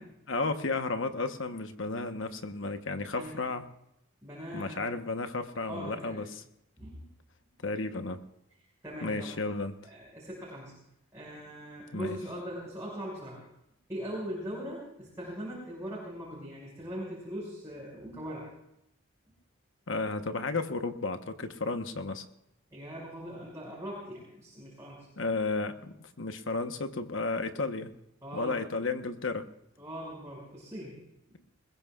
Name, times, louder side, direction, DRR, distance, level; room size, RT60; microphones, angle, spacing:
voice 1, 0.3-3.6 4.5-6.4 7.6-8.2 9.0-9.7 11.9-12.2 19.9-22.2 25.2-27.9 28.3-29.5, left 3 dB, 65° left, 8 dB, 1.1 m, -33 dB
voice 2, 4.2-4.9 5.5-6.2 6.8-7.0 8.8-9.3 9.8-10.7 11.1-13.4 13.9-18.5 22.7-25.1 28.2-28.6 29.8-31.0, equal, 15° right, -6 dB, 5.9 m, -40 dB
21.5 x 21.0 x 2.4 m, 0.81 s
head